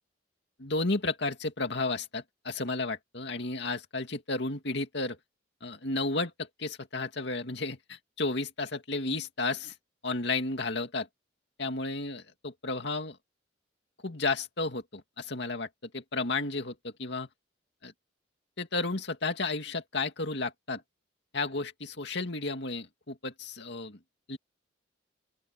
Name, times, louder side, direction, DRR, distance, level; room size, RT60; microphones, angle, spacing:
voice 1, 0.6-5.2 5.6-9.7 10.0-11.1 11.6-13.2 14.0-17.3 17.8-17.9 18.6-20.8 21.3-24.0 24.3-24.4, left 3 dB, 60° left, 2.5 m, -33 dB
open air
head